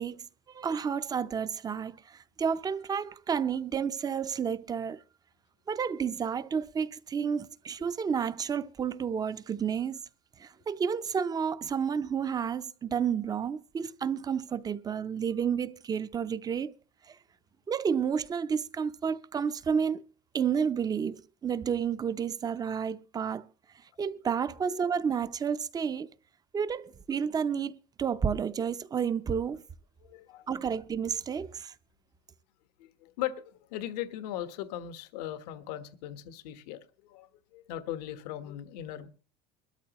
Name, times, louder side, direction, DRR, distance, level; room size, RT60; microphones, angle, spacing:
voice 1, 0.0-5.0 5.7-10.0 10.4-16.7 17.1-17.2 17.7-20.0 20.3-23.5 24.0-26.1 26.5-29.6 30.5-31.7, right 7 dB, 20° right, 0.6 m, -31 dB
voice 2, 30.0-30.5 32.8-39.1, left 12 dB, 85° left, 1.3 m, -39 dB
22.5 x 13.0 x 3.0 m
cardioid pair, 145°, 20 cm